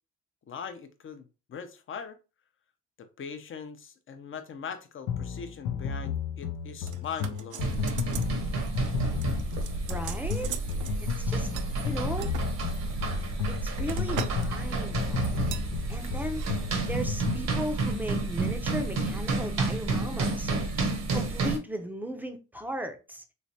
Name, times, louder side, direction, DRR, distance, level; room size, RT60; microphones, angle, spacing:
voice 1, 0.5-2.2 3.0-7.8, left 6 dB, 45° left, 0.6 m, -41 dB
sound 1, 5.1-17.5, left 7 dB, 90° left, 0.6 m, -33 dB
sound 2, 6.9-8.3 8.6-8.9 9.2-11.0 11.6-12.5 13.1-14.5 14.8-15.0 15.5-15.7 16.3-16.5 16.8-16.9, right 9 dB, 80° right, 0.5 m, -40 dB
sound 3, 7.6-21.6, right 3 dB, 60° right, 0.9 m, -30 dB
voice 2, 9.9-10.5 11.2-11.5 11.8-12.3 13.5-16.5 16.8-20.7 21.1-23.2, equal, 5° right, 0.5 m, -37 dB
3.2 x 3.1 x 2.7 m
cardioid pair, 90°, 30 cm